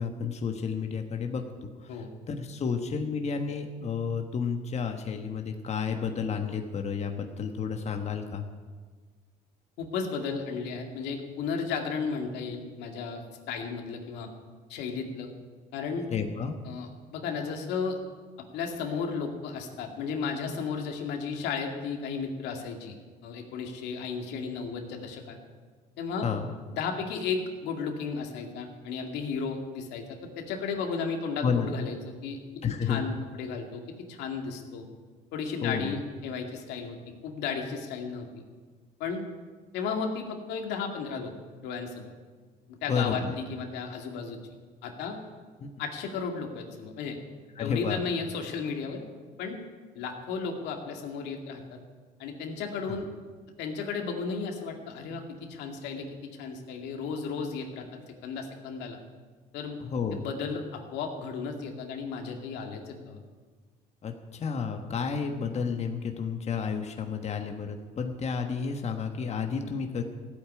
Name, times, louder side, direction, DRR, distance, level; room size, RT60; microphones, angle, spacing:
voice 1, 0.0-8.4 16.1-16.6 26.2-26.5 31.4-31.7 32.6-33.0 35.6-36.0 42.9-43.3 45.6-45.7 47.6-48.0 52.9-53.0 59.8-60.3 64.0-70.0, left 6 dB, 40° left, 5 dB, 1.4 m, -31 dB
voice 2, 9.8-13.2 13.5-14.3 14.7-15.3 15.7-16.1 16.6-18.0 18.5-22.9 23.2-25.4 26.0-26.3 26.7-32.4 32.8-33.8 34.1-34.9 35.3-37.0 37.2-38.3 39.0-39.2 39.7-41.3 41.6-42.1 42.7-44.4 44.8-45.2 45.8-47.2 47.6-49.0 49.4-49.6 49.9-51.8 52.2-53.1 53.6-59.0 59.5-59.8 60.1-63.2, left 5 dB, 90° left, 3 dB, 2.3 m, -34 dB
15.0 x 8.5 x 9.6 m, 1.5 s
cardioid pair, 110°, 17 cm